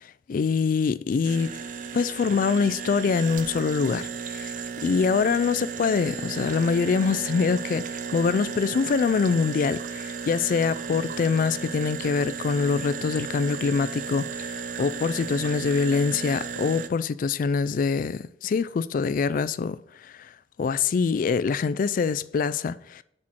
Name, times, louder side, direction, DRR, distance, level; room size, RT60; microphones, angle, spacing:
voice 1, 0.3-1.5 1.9-4.5 4.8-20.3 20.6-23.0, left 5 dB, 50° left, 0.3 m, -24 dB
sound 1, 1.2-16.9, right 6 dB, 45° right, 0.5 m, -34 dB
6.2 x 4.4 x 4.5 m
head